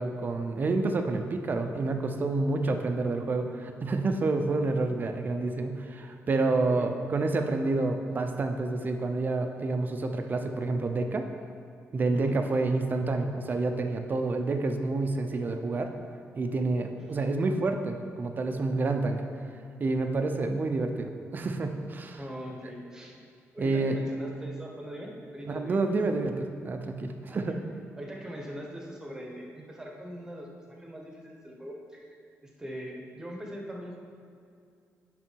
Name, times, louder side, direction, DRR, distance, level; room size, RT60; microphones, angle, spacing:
voice 1, 0.0-11.3 11.9-15.9 16.3-19.2 19.8-22.2 23.6-24.0 25.5-27.6, right 3 dB, 35° right, 5 dB, 0.5 m, -28 dB
voice 2, 6.6-6.9 12.1-12.4 17.1-17.2 22.1-23.2 23.5-25.8 27.3-27.6 28.0-30.5 30.8-32.1 32.4-34.0, equal, 10° right, -1 dB, 1.1 m, -41 dB
10.5 x 3.8 x 4.5 m, 2.4 s
wide cardioid pair, 145°, 5 cm